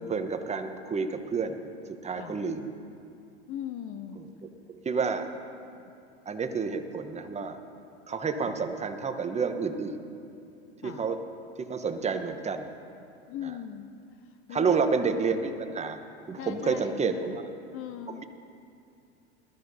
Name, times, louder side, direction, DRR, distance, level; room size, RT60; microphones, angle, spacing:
voice 1, 0.0-1.6 2.0-2.7 4.2-4.3 4.7-5.3 6.3-7.6 8.1-10.0 10.8-11.2 11.6-12.7 14.5-16.0 16.3-17.4, right 5 dB, 20° right, 7 dB, 1.0 m, -29 dB
voice 2, 3.5-4.3 5.7-5.9 8.4-8.6 10.8-11.1 13.3-13.9 14.2-14.8 16.4-17.4 17.7-18.2, left 9 dB, 40° left, 9 dB, 0.7 m, -40 dB
20.5 x 13.5 x 2.7 m, 2.6 s
hypercardioid pair, 90°, 33 cm